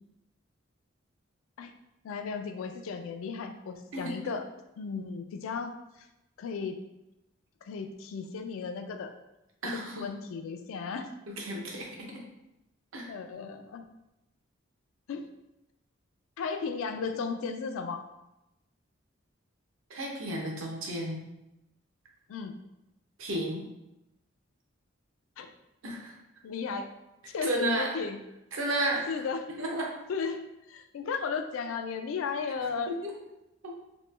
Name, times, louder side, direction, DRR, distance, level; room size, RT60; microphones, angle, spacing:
voice 1, 2.0-4.4 4.8-5.7 6.0-6.1 6.4-6.8 7.6-9.1 10.0-11.1 13.1-13.8 15.1-15.3 16.4-18.0 22.3-22.5 25.4-25.5 26.4-26.9 27.3-28.2 28.7-29.5 30.1-32.9, left 5 dB, 80° left, 7 dB, 0.3 m, -35 dB
voice 2, 9.6-10.1 11.4-12.2 12.9-13.1 19.9-21.2 23.2-23.6 25.8-26.1 27.4-27.9 28.5-29.1 29.6-29.9 32.9-33.2 33.6-33.7, right 1 dB, 80° right, -1 dB, 0.7 m, -32 dB
3.1 x 2.1 x 3.1 m, 0.91 s
head